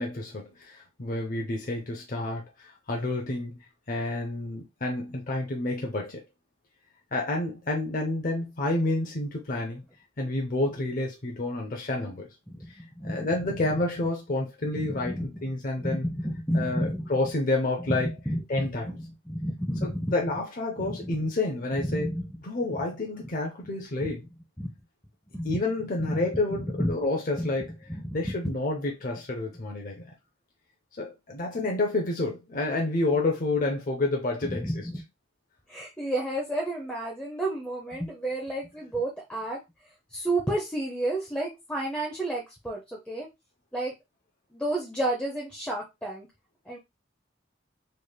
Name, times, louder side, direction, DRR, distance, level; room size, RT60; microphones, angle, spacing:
voice 1, 0.0-6.2 7.1-9.8 10.2-12.3 12.7-16.0 16.5-18.1 18.5-19.0 19.8-22.1 22.4-24.2 25.4-27.7 28.1-30.1 31.0-34.7, left 2 dB, 45° left, 0.6 m, -29 dB
voice 2, 12.5-13.8 14.6-17.1 17.8-20.1 20.8-21.3 21.8-22.4 22.7-22.8 24.0-24.1 24.6-24.7 25.3-25.5 26.0-26.9 27.4-28.5 34.4-35.0 35.7-39.6 40.1-43.3 43.7-43.9 44.5-46.3 46.7-46.8, right 1 dB, 5° left, 0.6 m, -31 dB
3.4 x 3.2 x 2.3 m
head